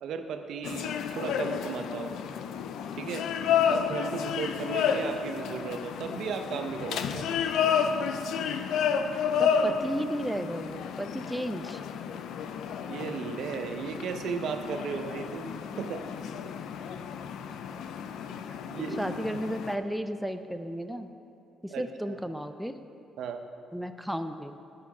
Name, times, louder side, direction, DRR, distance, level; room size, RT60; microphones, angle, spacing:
voice 1, 0.0-2.2 3.0-3.3 3.7-7.3 12.9-15.5 15.8-16.1 18.7-19.2 21.7-22.2 23.2-23.5, right 6 dB, 75° right, 7 dB, 0.6 m, -35 dB
sound 1, 0.6-19.8, left 7 dB, 80° left, 0.4 m, -31 dB
voice 2, 9.4-11.8 19.0-21.1 21.6-22.8 23.7-24.6, equal, ahead, 8 dB, 0.4 m, -34 dB
9.7 x 5.6 x 6.0 m, 2.8 s
cardioid pair, 90°, 0 cm